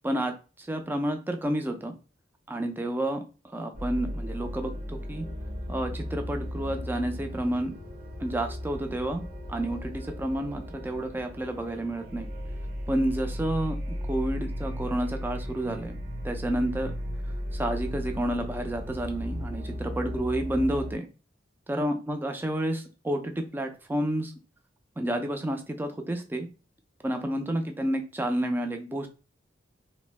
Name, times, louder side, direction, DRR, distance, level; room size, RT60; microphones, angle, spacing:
voice 1, 0.0-1.9 2.5-3.2 3.5-5.3 5.7-7.7 8.2-9.2 9.5-12.3 12.9-13.8 14.1-16.0 16.2-16.9 17.5-21.1 21.7-24.3 25.0-26.5 27.0-29.1, right 1 dB, 10° right, 5 dB, 0.4 m, -30 dB
sound 1, 3.7-21.0, equal, 50° right, 0.9 m, -36 dB
2.6 x 2.1 x 3.1 m, 0.34 s
head